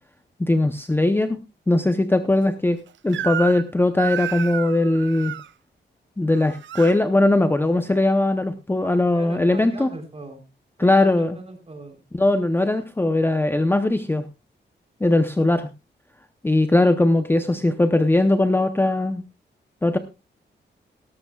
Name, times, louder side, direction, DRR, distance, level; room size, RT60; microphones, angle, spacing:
voice 1, 0.4-1.4 1.7-2.8 3.0-5.3 6.2-9.9 10.8-11.4 12.1-14.2 15.0-15.7 16.4-19.2 19.8-20.0, left 2 dB, 10° left, 9 dB, 0.7 m, -20 dB
Crying sobbing / Screech, 3.1-3.7 4.0-5.5 6.3-7.0, right 10 dB, 80° right, 0.5 m, -31 dB
voice 2, 8.8-10.4 10.8-12.0, right 2 dB, 30° right, 5 dB, 3.7 m, -40 dB
17.5 x 13.5 x 2.3 m, 0.26 s
wide cardioid pair, 140°, 19 cm